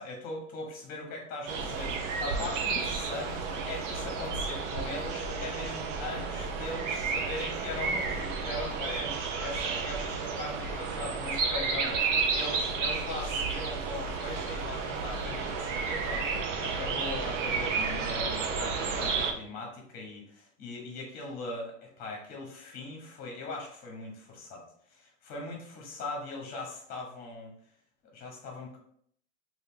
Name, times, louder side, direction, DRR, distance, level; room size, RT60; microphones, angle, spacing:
voice 1, 0.0-24.6 24.9-27.5 28.1-28.8, left 2 dB, 20° left, 0 dB, 0.9 m, -40 dB
sound 1, 1.5-19.3, right 5 dB, 65° right, 0.7 m, -32 dB
3.1 x 2.6 x 3.6 m, 0.65 s
supercardioid pair, 165°, 39 cm